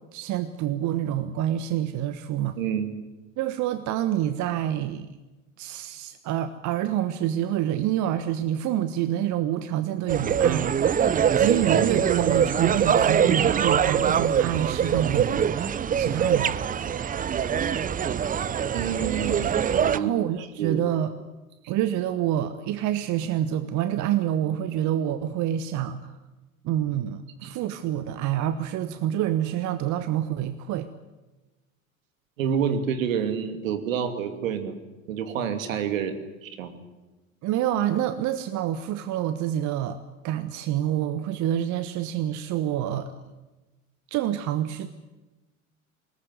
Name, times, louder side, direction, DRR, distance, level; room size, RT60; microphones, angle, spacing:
voice 1, 0.1-2.6 3.4-5.1 5.6-15.5 15.9-16.5 19.9-21.1 21.7-26.1 26.6-30.9 32.6-32.8 37.4-40.0 40.2-43.1 44.1-44.9, right 11 dB, 45° right, 12 dB, 1.3 m, -27 dB
voice 2, 2.6-2.9 18.7-20.1 20.6-20.8 27.4-27.5 32.4-34.8 35.1-36.2 36.4-36.8, right 8 dB, 70° right, 9 dB, 2.8 m, -28 dB
sound 1, 10.1-20.0, right 8 dB, 20° right, 0.7 m, -23 dB
21.5 x 19.0 x 9.5 m, 1.1 s
figure-of-eight pair, 80°, 42 cm